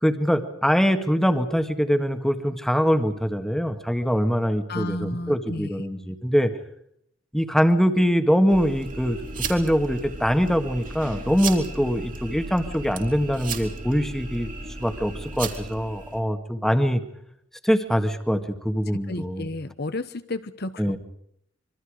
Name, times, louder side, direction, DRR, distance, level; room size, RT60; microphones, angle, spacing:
voice 1, 0.0-6.5 7.3-9.2 9.5-14.5 14.8-17.0 17.6-19.5 20.8-21.0, equal, ahead, 7 dB, 1.8 m, -23 dB
voice 2, 4.7-5.7 19.1-20.9, left 2 dB, 55° left, 11 dB, 1.0 m, -32 dB
sound 1, 8.5-16.2, right 3 dB, 45° right, 3.4 m, -35 dB
26.5 x 23.5 x 5.0 m, 0.72 s
head